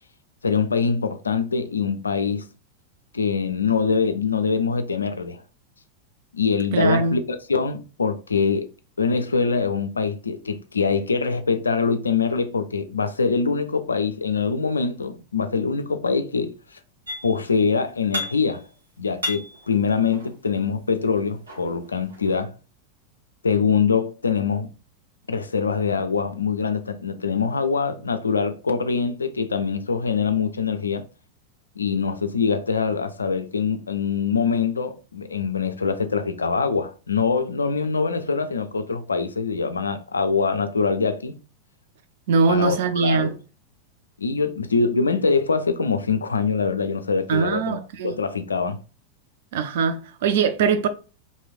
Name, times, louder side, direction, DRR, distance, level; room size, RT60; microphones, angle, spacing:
voice 1, 0.4-2.5 3.1-5.4 6.3-8.7 9.0-16.5 17.2-18.6 19.0-22.5 23.4-24.7 25.3-31.1 31.8-41.4 42.5-43.3 44.2-47.8 48.0-48.8, left 5 dB, 75° left, 0.3 m, -24 dB
voice 2, 6.7-7.2 42.3-43.3 47.3-48.2 49.5-50.9, right 5 dB, 55° right, 0.4 m, -21 dB
sound 1, 17.1-17.6 17.8-18.7 19.0-20.6 21.2-22.4, left 1 dB, 75° right, 1.1 m, -34 dB
3.0 x 2.7 x 2.4 m
figure-of-eight pair, 90°, 0 cm